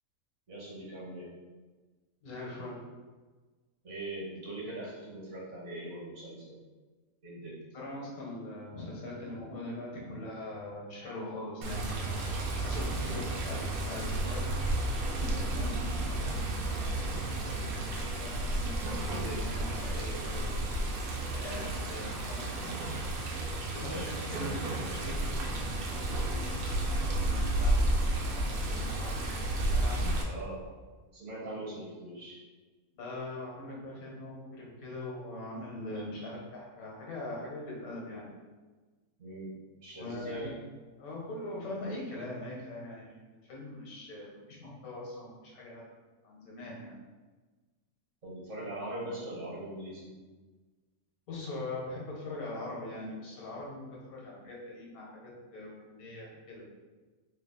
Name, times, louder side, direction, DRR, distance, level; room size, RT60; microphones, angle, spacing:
voice 1, 0.5-1.3 3.8-6.6 7.2-7.6 13.0-13.3 21.4-21.6 23.8-24.7 30.2-30.6 31.1-32.4 39.2-39.5 39.8-40.5 48.2-50.1, right 1 dB, 60° right, -5 dB, 1.3 m, -41 dB
voice 2, 2.2-2.8 7.7-12.1 12.6-14.7 15.2-16.8 17.4-17.7 18.1-20.5 21.3-23.1 23.6-26.2 27.0-29.2 29.7-30.2 33.0-38.3 39.9-40.5 41.0-45.8 46.2-47.0 51.3-53.8 54.1-56.6, left 1 dB, 85° left, -3 dB, 1.4 m, -42 dB
Water, 11.6-30.2, right 1 dB, 85° right, 1.1 m, -32 dB
3.2 x 2.3 x 3.7 m, 1.3 s
omnidirectional pair, 1.5 m